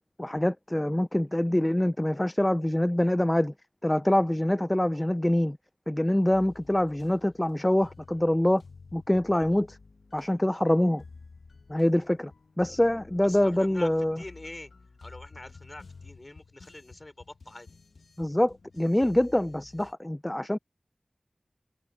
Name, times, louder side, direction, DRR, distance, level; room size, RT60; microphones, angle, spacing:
voice 1, 0.2-3.5 3.8-5.6 5.9-8.6 8.9-9.8 10.1-11.0 11.7-12.3 12.6-14.2 18.2-20.6, left 1 dB, 20° left, 0.5 m, -25 dB
sound 1, 6.3-19.9, left 4 dB, 80° left, 1.4 m, -52 dB
voice 2, 13.2-13.9 14.1-14.7 15.0-17.7, left 2 dB, 35° left, 4.8 m, -44 dB
wide cardioid pair, 45°, 0 cm